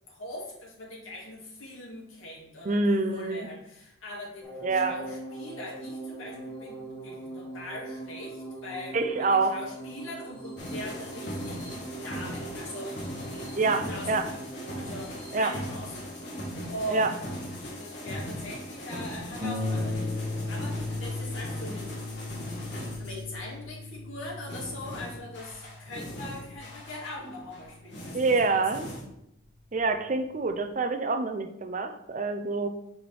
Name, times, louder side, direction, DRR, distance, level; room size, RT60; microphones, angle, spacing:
voice 1, 0.1-12.9 13.3-14.3 14.7-16.0 16.7-17.2 17.5-22.0 23.0-28.6, left 1 dB, 85° left, -5 dB, 2.1 m, -41 dB
voice 2, 2.6-3.5 4.6-5.0 8.9-9.6 13.6-14.3 15.3-15.5 16.9-17.1 28.1-28.9 29.7-32.7, right 3 dB, 40° right, 7 dB, 0.5 m, -26 dB
sound 1, 4.4-16.9, right 2 dB, 10° left, 1.8 m, -42 dB
sound 2, 10.6-23.2 24.5-29.0, equal, 55° left, 1.6 m, -39 dB
Harp, 19.4-28.6 29.4-29.5 30.0-30.1, left 2 dB, 20° right, 2.2 m, -36 dB
6.3 x 4.8 x 3.4 m, 0.82 s
head